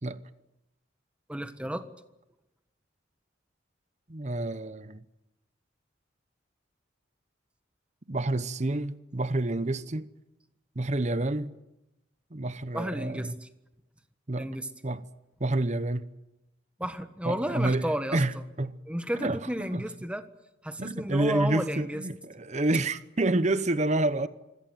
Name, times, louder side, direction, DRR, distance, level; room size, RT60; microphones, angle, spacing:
voice 1, 1.3-1.9 12.7-13.5 14.4-14.7 16.8-18.2 18.9-20.2 20.6-22.0, equal, 5° right, 1.3 m, -32 dB
voice 2, 4.1-5.0 8.1-10.1 10.8-11.5 12.3-13.4 14.3-14.5 14.8-15.1 15.4-16.1 17.2-18.8 19.2-19.8 20.8-24.3, right 2 dB, 35° right, 0.9 m, -29 dB
25.5 x 17.0 x 9.3 m
head